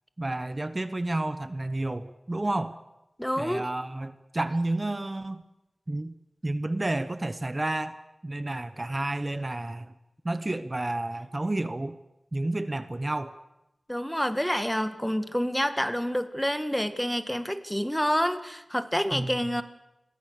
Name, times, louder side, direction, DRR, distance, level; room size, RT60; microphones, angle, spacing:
voice 1, 0.2-2.8 3.4-5.4 5.9-6.1 6.4-7.9 8.2-9.9 10.2-12.0 12.3-13.3 19.1-19.3, right 2 dB, 30° right, 12 dB, 1.1 m, -30 dB
voice 2, 3.2-3.6 13.9-19.6, equal, 5° left, 10 dB, 1.7 m, -28 dB
29.5 x 22.5 x 6.7 m, 0.91 s
wide cardioid pair, 75°, 0 cm